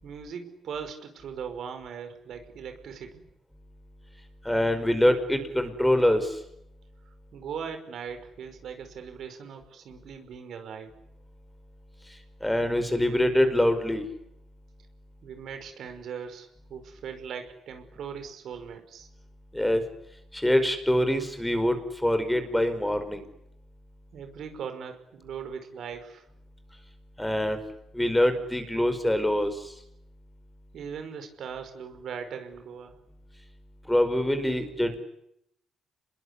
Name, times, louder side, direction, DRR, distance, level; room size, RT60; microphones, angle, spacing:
voice 1, 0.0-3.2 7.3-10.9 15.2-19.1 24.1-26.3 30.7-32.9, right 7 dB, 70° right, 7 dB, 5.3 m, -39 dB
voice 2, 4.4-6.3 12.4-14.0 19.5-19.8 20.3-23.2 27.2-27.6 27.9-29.5 33.9-35.0, left 1 dB, 5° left, 9 dB, 5.1 m, -24 dB
27.0 x 21.5 x 10.0 m, 0.77 s
cardioid pair, 90°, 0 cm